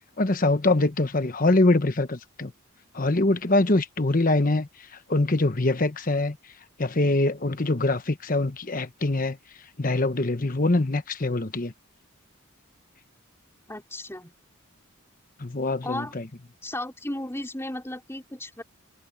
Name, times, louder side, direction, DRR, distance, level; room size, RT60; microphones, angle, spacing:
voice 1, 0.2-2.5 2.9-6.4 6.8-9.4 9.8-11.7 15.4-16.3, left 2 dB, 40° left, 1.1 m, -24 dB
voice 2, 13.7-14.3 15.8-16.1 16.6-18.6, left 1 dB, 10° left, 4.5 m, -34 dB
head